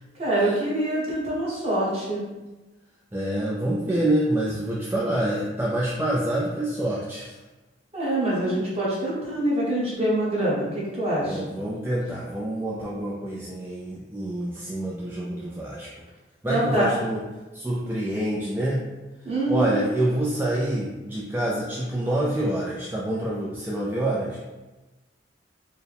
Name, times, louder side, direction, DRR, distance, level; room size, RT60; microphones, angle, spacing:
voice 1, 0.2-2.2 7.9-11.5 16.5-16.9 19.2-19.8, right 1 dB, 35° right, -7 dB, 1.2 m, -25 dB
voice 2, 3.1-7.3 11.2-15.9 16.4-17.2 17.5-18.9 19.5-24.4, right 1 dB, 10° right, -6 dB, 0.4 m, -27 dB
4.4 x 2.2 x 3.3 m, 1.1 s
head